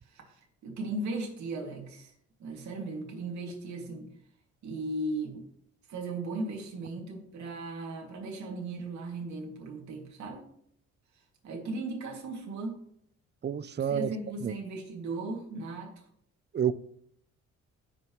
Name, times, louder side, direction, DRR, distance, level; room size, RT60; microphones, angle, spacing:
voice 1, 0.0-2.1 2.4-4.1 4.6-5.4 5.9-10.5 11.1-12.8 13.8-16.1, right 2 dB, 70° right, 2.4 m, -37 dB
voice 2, 13.4-14.1 14.4-14.5 16.5-16.7, right 9 dB, 35° right, 0.5 m, -28 dB
17.0 x 5.8 x 3.1 m
cardioid pair, 90°, 30 cm